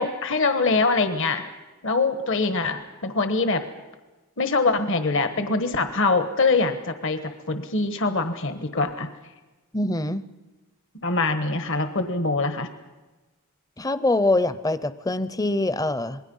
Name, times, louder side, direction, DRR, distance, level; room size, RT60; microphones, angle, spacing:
voice 1, 0.0-1.5 1.8-3.6 4.4-9.1 11.0-12.7, left 3 dB, 60° left, 9 dB, 1.3 m, -23 dB
voice 2, 9.7-10.2 13.8-16.2, left 2 dB, 15° left, 14 dB, 0.6 m, -24 dB
27.0 x 21.0 x 5.5 m, 1.2 s
head